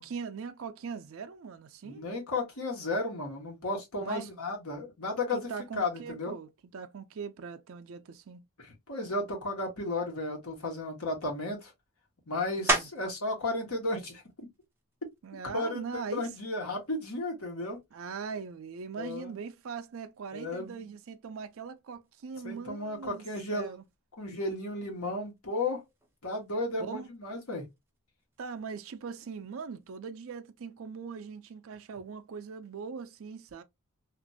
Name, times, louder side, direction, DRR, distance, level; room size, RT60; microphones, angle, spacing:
voice 1, 0.0-2.0 4.0-4.3 5.3-8.4 12.6-12.9 15.2-16.3 17.9-23.8 26.8-27.1 28.4-33.6, right 5 dB, 65° right, 0.4 m, -41 dB
voice 2, 1.8-5.5 5.8-6.3 8.6-11.7 12.3-14.5 15.5-15.8 16.1-17.8 19.0-19.3 20.3-20.9 22.4-23.7 24.2-25.8 26.2-27.7, left 2 dB, 85° left, 1.3 m, -34 dB
sound 1, 12.7-13.3 13.8-18.3 18.8-23.9 24.2-29.9, right 2 dB, 10° right, 0.6 m, -39 dB
2.9 x 2.5 x 2.6 m
head